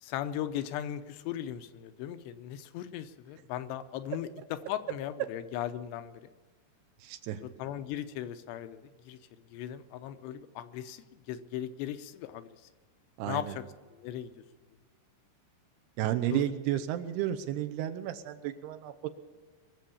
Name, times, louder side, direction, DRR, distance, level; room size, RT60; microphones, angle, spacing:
voice 1, 0.0-6.3 7.6-9.2 9.5-12.5 13.3-13.6 14.0-14.3 16.3-16.4, left 11 dB, 85° left, 10 dB, 2.9 m, -38 dB
voice 2, 7.0-7.4 13.2-13.6 16.0-19.1, right 12 dB, 80° right, 8 dB, 2.8 m, -32 dB
22.0 x 7.6 x 7.0 m, 1.5 s
omnidirectional pair, 4.9 m